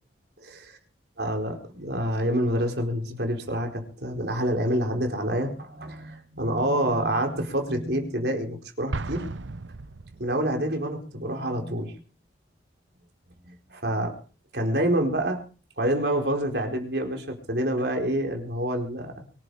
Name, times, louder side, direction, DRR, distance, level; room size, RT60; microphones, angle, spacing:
voice 1, 0.4-0.8 1.2-9.2 10.2-12.0 13.4-14.1 14.5-15.4 15.8-19.3, right 1 dB, 60° right, 3 dB, 4.5 m, -27 dB
Explosion, 8.9-10.7, right 3 dB, 80° right, 0.8 m, -35 dB
24.0 x 10.5 x 5.0 m, 0.38 s
head